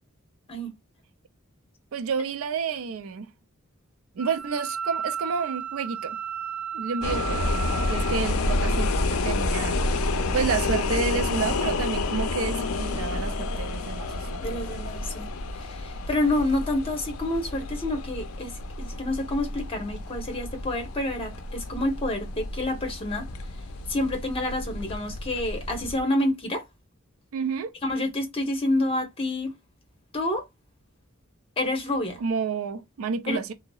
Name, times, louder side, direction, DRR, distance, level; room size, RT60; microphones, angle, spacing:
voice 1, 1.9-3.3 4.2-6.2 6.7-7.5 7.9-9.8 10.3-14.8 27.3-27.7 32.2-33.5, right 5 dB, 75° right, 0.4 m, -30 dB
Wind instrument woodwind instrument, 4.2-8.2, right 8 dB, 10° right, 0.3 m, -34 dB
sound 1, 7.0-26.0, left 2 dB, 85° left, 0.5 m, -29 dB
voice 2, 14.4-15.3 15.7-18.5 18.8-23.3 23.9-26.6 27.8-29.5 30.1-30.4 31.6-32.2 33.3-33.4, left 1 dB, 25° left, 0.9 m, -28 dB
2.7 x 2.0 x 2.3 m
head